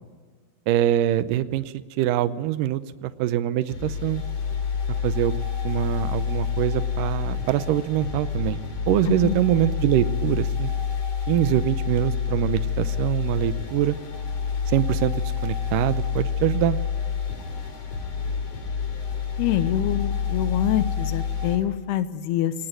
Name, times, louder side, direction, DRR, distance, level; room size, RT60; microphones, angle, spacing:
voice 1, 0.7-1.6 2.0-4.2 5.0-5.4 5.6-10.7 11.3-14.0 14.7-16.8, right 12 dB, 75° right, 13 dB, 2.0 m, -24 dB
sound 1, 3.7-21.6, left 7 dB, 45° left, 4.1 m, -28 dB
voice 2, 19.4-22.5, left 11 dB, 85° left, 12 dB, 3.0 m, -25 dB
21.5 x 19.0 x 9.2 m, 1.5 s
omnidirectional pair, 4.7 m